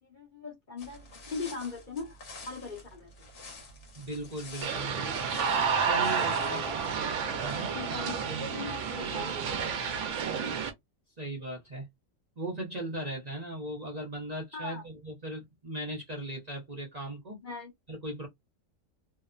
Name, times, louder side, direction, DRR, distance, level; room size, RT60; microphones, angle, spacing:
voice 1, 0.0-2.2 2.5-3.3 6.3-6.8 7.2-10.5 14.5-14.8 17.4-17.7, left 3 dB, 40° left, 1.0 m, -41 dB
sound 1, 0.8-7.9, left 2 dB, 65° left, 1.3 m, -49 dB
voice 2, 4.0-5.3 5.8-6.6 7.4-7.7 11.2-11.9 12.4-17.4 17.9-18.3, right 1 dB, 35° right, 0.8 m, -38 dB
sound 2, 4.6-10.7, right 6 dB, 70° right, 0.9 m, -30 dB
2.8 x 2.1 x 2.4 m
omnidirectional pair, 1.3 m